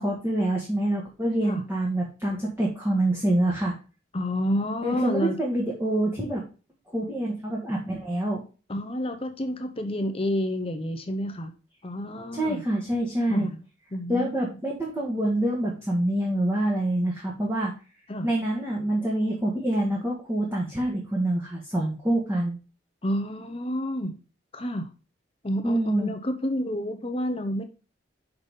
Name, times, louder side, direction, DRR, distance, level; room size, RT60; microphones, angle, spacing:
voice 1, 0.0-3.7 4.8-6.4 6.9-8.4 12.3-13.5 14.1-17.7 18.2-22.6 25.6-26.1, right 1 dB, 10° right, -3 dB, 1.6 m, -26 dB
voice 2, 4.1-5.4 8.7-11.5 11.8-12.6 13.3-13.6 13.9-14.3 18.1-18.3 23.0-24.2 24.5-24.9 25.4-27.6, equal, 30° left, 7 dB, 0.8 m, -29 dB
5.9 x 5.6 x 5.2 m, 0.34 s
head